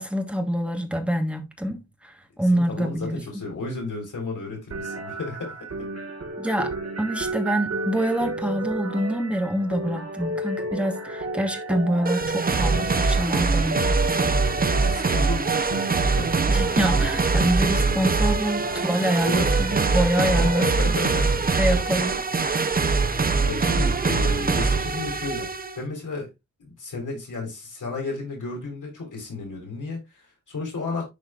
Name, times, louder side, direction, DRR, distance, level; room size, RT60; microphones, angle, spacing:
voice 1, 0.0-3.2 6.4-6.7 7.0-13.9 16.5-21.0 21.6-22.1, equal, 5° right, 1.3 m, -26 dB
voice 2, 2.5-5.7 14.7-16.3 19.2-19.5 20.2-21.4 23.4-25.5 25.8-26.3 26.6-31.0, left 3 dB, 85° left, 3.9 m, -33 dB
sound 1, 4.7-20.7, right 2 dB, 55° right, 1.8 m, -32 dB
sound 2, 12.1-25.8, right 4 dB, 30° right, 0.6 m, -23 dB
11.0 x 4.3 x 2.4 m
wide cardioid pair, 120°, 30 cm